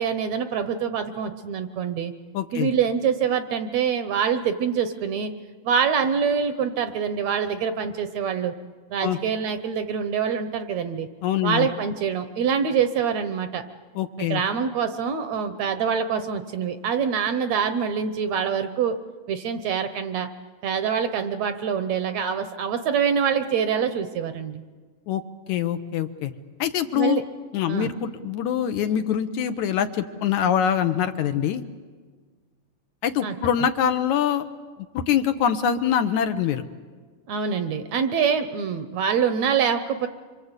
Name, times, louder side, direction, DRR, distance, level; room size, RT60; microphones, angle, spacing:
voice 1, 0.0-2.1 2.5-5.3 5.6-8.5 8.9-11.1 11.4-13.6 14.2-19.0 19.3-20.3 20.6-24.6 26.9-27.2 27.7-27.9 33.2-33.4 37.3-40.1, right 7 dB, 70° right, 9 dB, 1.9 m, -25 dB
voice 2, 2.3-2.7 9.0-9.2 11.2-11.7 14.0-14.4 25.1-25.2 25.5-26.3 26.6-27.2 27.5-31.6 33.0-34.4 34.9-36.6, left 9 dB, 70° left, 8 dB, 2.1 m, -24 dB
26.0 x 25.5 x 8.1 m, 1.5 s
omnidirectional pair, 3.8 m